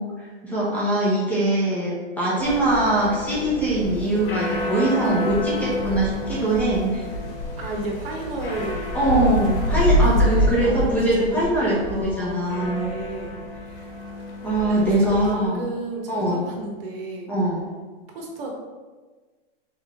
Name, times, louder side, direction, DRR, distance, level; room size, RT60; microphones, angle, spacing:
voice 1, 0.0-7.1 8.9-12.9 14.4-15.6 16.1-16.4 17.3-17.7, right 1 dB, 5° left, -8 dB, 1.0 m, -22 dB
sound 1, 2.4-15.3, equal, 65° left, 1.4 m, -27 dB
voice 2, 7.6-9.3 10.1-13.4 14.6-14.8 15.1-17.3 18.1-18.5, right 2 dB, 70° right, 0 dB, 1.2 m, -33 dB
3.6 x 3.5 x 3.7 m, 1.3 s
supercardioid pair, 155°, 30 cm